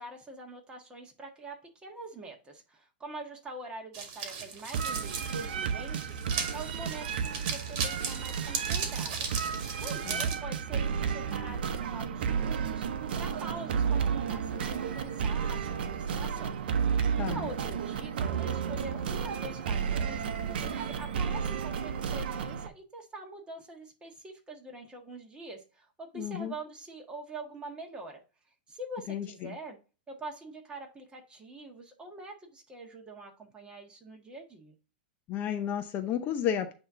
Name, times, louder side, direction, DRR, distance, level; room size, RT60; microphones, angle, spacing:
voice 1, 0.0-9.3 9.8-12.8 13.1-16.6 17.2-20.2 20.5-28.2 28.7-29.8 30.1-34.7, right 2 dB, 15° right, 1.5 m, -44 dB
sound 1, 3.9-10.3, right 6 dB, 50° right, 1.8 m, -37 dB
sound 2, 4.7-22.7, right 7 dB, 70° right, 0.7 m, -32 dB
voice 2, 26.1-26.5 29.1-29.5 35.3-36.7, left 9 dB, 35° left, 0.7 m, -32 dB
8.6 x 2.9 x 3.7 m
hypercardioid pair, 125°, 5 cm